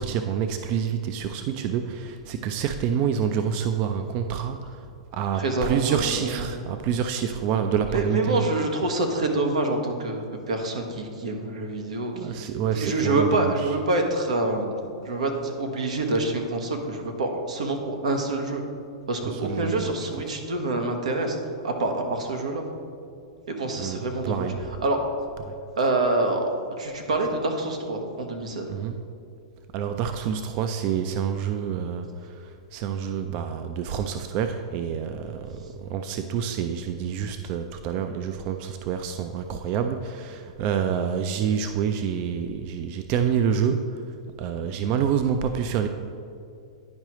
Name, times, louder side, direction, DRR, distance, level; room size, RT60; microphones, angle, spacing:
voice 1, 0.0-4.8 5.1-8.4 12.1-13.7 19.2-19.9 23.8-24.6 25.4-25.5 28.7-29.0 29.7-44.0 44.4-45.9, right 8 dB, 40° right, 8 dB, 0.3 m, -27 dB
voice 2, 5.3-6.5 7.9-12.4 12.7-14.7 15.0-18.6 19.1-21.4 21.6-22.6 23.5-24.5 24.8-25.0 25.8-26.4 26.8-28.7, right 2 dB, 85° right, 4 dB, 1.0 m, -26 dB
10.5 x 4.7 x 3.0 m, 2.4 s
hypercardioid pair, 135°, 3 cm